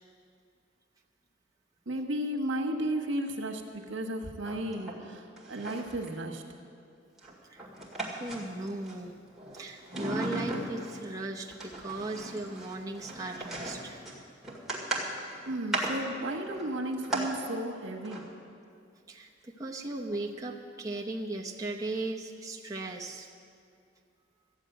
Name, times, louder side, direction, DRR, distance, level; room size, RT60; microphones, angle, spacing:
voice 1, 1.9-6.4 15.4-18.2, right 1 dB, 85° right, 3 dB, 1.4 m, -34 dB
sound 1, 4.4-5.1 5.4-6.1 7.2-8.9 9.3-11.1 11.5-17.3 18.0-18.3 19.8-19.9 20.1-20.2, right 1 dB, ahead, 1.9 m, -37 dB
voice 2, 8.2-9.1 9.5-14.0 19.1-23.3, right 2 dB, 20° right, -1 dB, 0.8 m, -37 dB
13.5 x 7.3 x 9.1 m, 2.4 s
head